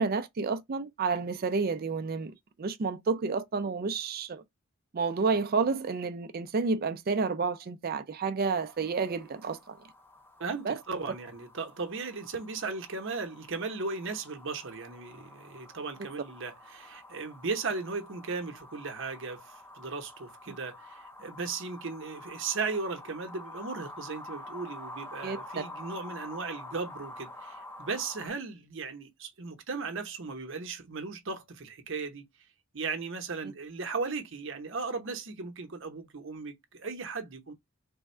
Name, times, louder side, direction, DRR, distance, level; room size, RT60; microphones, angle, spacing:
voice 1, 0.0-4.4 4.9-9.8 10.6-10.8 25.2-25.4, right 4 dB, 45° right, 0.4 m, -30 dB
sound 1, 8.5-28.3, left 1 dB, 10° left, 0.5 m, -48 dB
voice 2, 10.4-32.3 32.7-37.5, right 4 dB, 60° right, 0.8 m, -36 dB
3.4 x 2.2 x 4.3 m
head